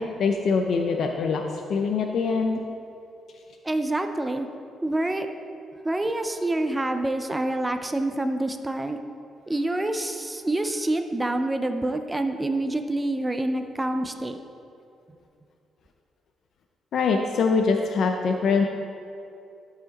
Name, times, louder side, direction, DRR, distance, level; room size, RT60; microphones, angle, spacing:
voice 1, 0.0-2.6 16.9-18.7, left 4 dB, 55° left, 3 dB, 0.4 m, -23 dB
voice 2, 3.6-4.5 4.8-5.3 5.8-9.0 9.5-14.4, right 1 dB, 10° right, 7 dB, 0.3 m, -27 dB
11.0 x 4.9 x 4.0 m, 2.6 s
cardioid pair, 160°, 0 cm